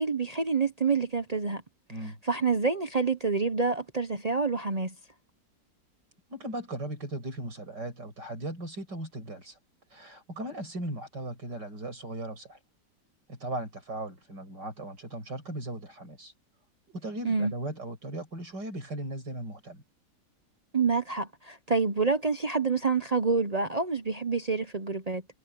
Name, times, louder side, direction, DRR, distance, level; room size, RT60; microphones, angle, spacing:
voice 1, 0.0-1.6 2.2-4.9 17.2-17.5 20.7-25.2, right 4 dB, 35° right, 0.6 m, -27 dB
voice 2, 6.3-9.6 9.9-12.6 13.3-16.3 16.9-19.8, right 1 dB, 75° right, 7.1 m, -37 dB
omnidirectional pair, 1.9 m